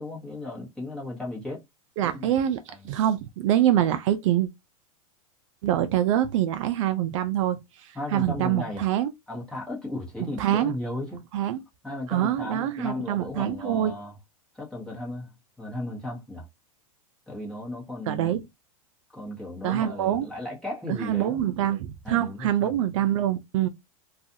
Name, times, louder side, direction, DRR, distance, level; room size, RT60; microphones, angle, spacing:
voice 1, 0.0-1.6 2.1-2.3 7.9-8.9 9.3-11.2 11.8-14.1 14.6-15.3 15.6-16.5 17.3-18.3 19.1-21.4 22.0-22.7, left 2 dB, 5° left, 1.1 m, -35 dB
voice 2, 2.0-4.5 5.6-9.1 10.4-10.7 11.3-11.6 12.1-13.9 18.1-18.4 19.6-20.3 20.9-23.7, right 11 dB, 60° right, 0.4 m, -25 dB
2.5 x 2.4 x 2.6 m
hypercardioid pair, 135°, 18 cm